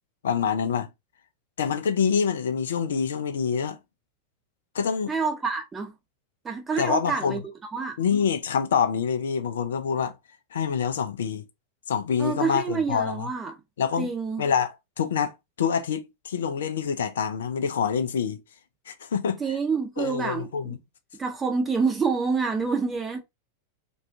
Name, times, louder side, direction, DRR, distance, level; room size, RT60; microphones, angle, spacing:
voice 1, 0.2-0.9 1.6-3.8 4.7-5.1 6.8-7.4 8.0-10.1 10.5-11.4 11.9-13.3 13.8-14.1 14.4-18.4 18.9-19.6 20.0-20.8, left 7 dB, 65° left, 0.4 m, -26 dB
voice 2, 5.1-5.9 6.4-7.4 7.7-8.0 12.2-13.6 14.0-14.4 19.4-20.8 21.2-23.2, right 5 dB, 15° right, 0.7 m, -27 dB
2.4 x 2.3 x 2.5 m
figure-of-eight pair, 90°, 0 cm